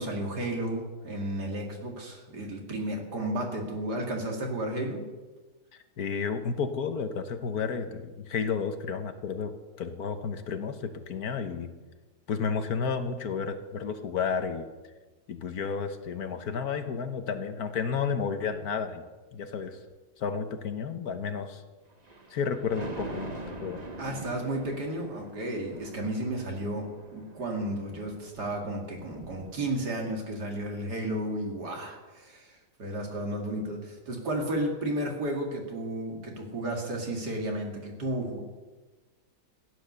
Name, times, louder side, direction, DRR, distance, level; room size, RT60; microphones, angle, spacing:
voice 1, 0.0-5.0 24.0-38.4, right 1 dB, 75° right, 1 dB, 3.0 m, -33 dB
voice 2, 6.0-11.7 12.3-14.7 15.3-19.0 19.3-19.8 20.2-21.6 22.3-23.8, left 6 dB, 65° left, 9 dB, 1.5 m, -32 dB
Thunder, 21.9-30.2 30.6-30.7, right 1 dB, 25° right, 1.3 m, -44 dB
16.0 x 9.8 x 6.8 m, 1.2 s
omnidirectional pair, 1.8 m